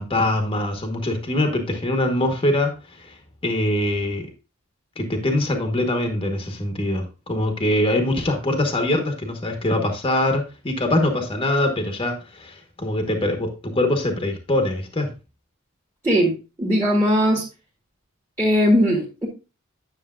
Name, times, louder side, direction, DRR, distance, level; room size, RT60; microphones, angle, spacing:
voice 1, 0.0-2.7 3.0-3.1 3.4-4.3 5.0-15.1, left 1 dB, 25° left, 4 dB, 1.1 m, -23 dB
voice 2, 16.0-17.4 18.4-19.3, equal, 15° right, -6 dB, 1.7 m, -19 dB
9.7 x 6.5 x 2.4 m, 0.30 s
head